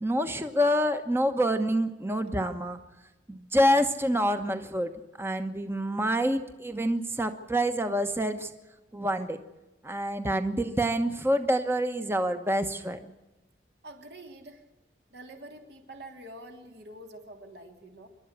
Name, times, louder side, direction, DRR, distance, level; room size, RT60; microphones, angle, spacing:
voice 1, 0.0-2.8 3.3-4.9 5.2-8.5 8.9-9.4 9.8-13.1, equal, 15° right, 8 dB, 1.1 m, -27 dB
voice 2, 13.8-14.6 15.1-18.1, right 1 dB, 60° right, 4 dB, 3.2 m, -46 dB
27.0 x 12.5 x 8.2 m, 1.0 s
head